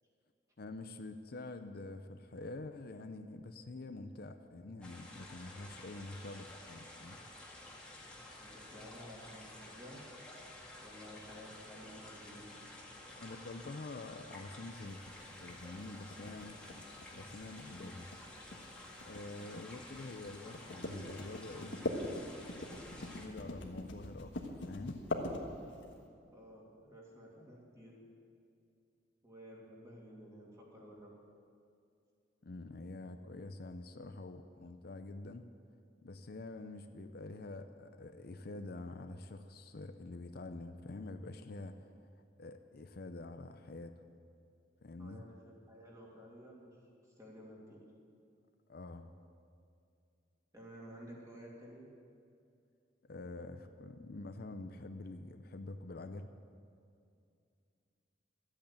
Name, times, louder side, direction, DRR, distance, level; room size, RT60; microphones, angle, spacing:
voice 1, 0.6-7.2 13.1-18.1 19.0-21.8 22.9-25.0 32.4-35.4 36.0-41.9 42.4-43.9 44.8-45.2 48.7-49.1 53.0-56.3, left 2 dB, 55° left, 8 dB, 0.6 m, -47 dB
sound 1, 4.8-23.3, left 1 dB, 5° left, 1.9 m, -52 dB
voice 2, 8.4-10.0 10.8-12.6 26.3-28.0 29.2-31.1 45.0-45.3 45.7-46.8 47.2-47.8 50.5-51.9, equal, 20° right, -4 dB, 2.8 m, -53 dB
sound 2, 14.9-25.9, left 2 dB, 90° left, 1.4 m, -42 dB
13.0 x 8.7 x 8.7 m, 2.5 s
head